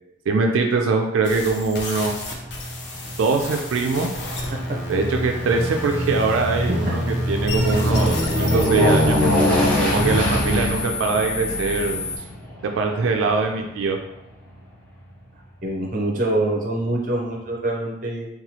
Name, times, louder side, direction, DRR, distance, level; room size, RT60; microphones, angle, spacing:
voice 1, 0.3-2.1 3.0-4.1 4.9-9.2 9.8-12.0 12.8-14.0, right 4 dB, 90° right, 3 dB, 0.3 m, -22 dB
sound 1, 1.2-12.2, left 2 dB, 65° left, 0.5 m, -31 dB
Aircraft, 2.0-14.5 15.0-15.1, equal, 10° left, 0.6 m, -24 dB
voice 2, 15.6-18.3, right 1 dB, 40° right, -1 dB, 0.5 m, -25 dB
2.9 x 2.3 x 2.8 m, 0.88 s
head